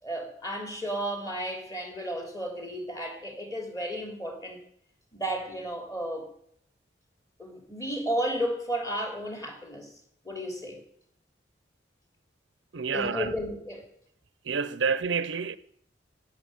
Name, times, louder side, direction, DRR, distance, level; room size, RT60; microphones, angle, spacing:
voice 1, 0.0-4.6 5.1-6.3 7.4-9.9 10.2-10.8 12.9-13.9, equal, 20° left, 3.3 m, -33 dB
voice 2, 12.7-13.3 14.4-15.6, right 5 dB, 80° right, 0.7 m, -28 dB
17.0 x 6.5 x 9.3 m
head